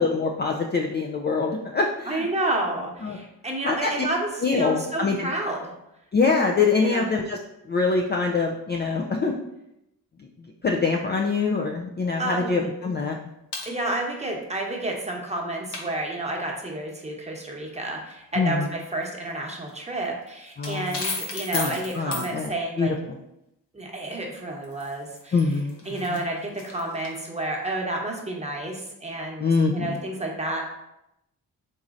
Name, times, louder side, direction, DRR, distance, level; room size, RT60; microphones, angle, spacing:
voice 1, 0.0-2.3 3.0-3.2 3.6-3.9 4.4-5.3 6.1-7.4 7.7-9.3 10.6-13.2 18.4-18.7 20.6-21.0 21.5-22.5 22.8-22.9 25.3-25.8 26.1-26.2 29.4-30.0, left 4 dB, 25° left, 1 dB, 0.4 m, -24 dB
voice 2, 2.1-5.7 6.8-7.0 12.2-12.7 13.7-22.9 23.7-25.4 25.8-30.6, right 2 dB, 15° right, -1 dB, 1.0 m, -30 dB
sound 1, 13.5-13.7 15.7-15.8 19.0-19.1 19.7-19.8 20.0-22.3 24.6-27.2, left 3 dB, 70° left, 0.9 m, -34 dB
3.9 x 3.0 x 2.5 m, 0.85 s
supercardioid pair, 40°, 42 cm